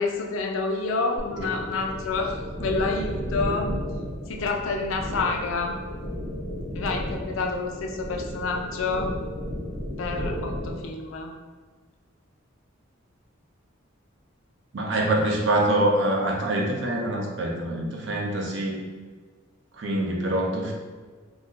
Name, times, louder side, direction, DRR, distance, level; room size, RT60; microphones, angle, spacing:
voice 1, 0.0-3.7 4.3-5.7 6.7-9.1 10.0-11.3, left 3 dB, 75° left, 2 dB, 0.4 m, -28 dB
sound 1, 1.2-10.8, equal, 30° right, 1.1 m, -33 dB
voice 2, 14.7-18.8 19.8-20.7, right 1 dB, 60° right, 0 dB, 0.5 m, -25 dB
2.5 x 2.1 x 3.7 m, 1.4 s
head